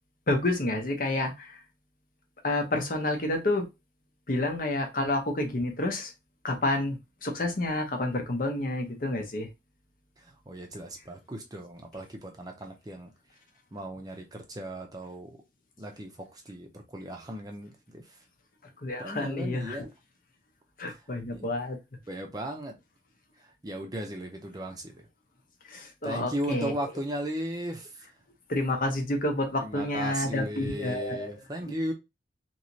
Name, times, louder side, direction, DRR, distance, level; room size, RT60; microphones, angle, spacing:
voice 1, 0.3-1.6 2.4-3.7 4.3-6.1 6.4-9.5 18.8-19.9 20.8-21.8 25.6-26.7 28.5-31.3, left 1 dB, 50° left, 0.8 m, -29 dB
voice 2, 10.2-13.1 13.7-15.4 15.8-18.2 19.0-19.9 21.3-21.5 22.1-22.8 23.4-25.1 26.0-28.1 29.6-31.9, equal, 20° right, 0.6 m, -36 dB
3.1 x 2.9 x 2.7 m
head